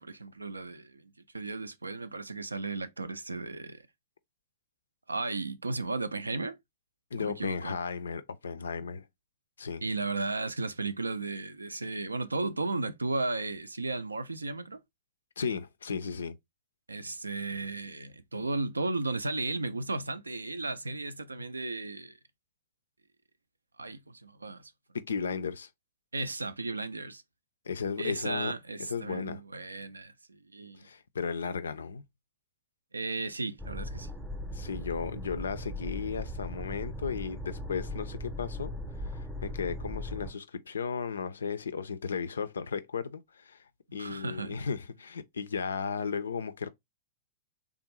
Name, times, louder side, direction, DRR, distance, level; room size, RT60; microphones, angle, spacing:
voice 1, 0.0-3.8 5.1-6.6 7.2-7.8 9.8-14.8 16.9-22.2 23.8-24.7 26.1-27.2 28.0-30.9 32.9-34.1 44.0-44.6, right 3 dB, 80° right, 0.4 m, -35 dB
voice 2, 7.1-9.0 9.6-9.8 15.4-16.4 24.9-25.7 27.7-28.5 28.8-29.4 30.8-32.0 34.5-38.7 39.1-43.6 43.9-46.7, left 6 dB, 65° left, 0.4 m, -35 dB
sound 1, 33.6-40.3, left 1 dB, 5° right, 0.6 m, -38 dB
3.5 x 2.5 x 2.9 m
figure-of-eight pair, 100°, 0 cm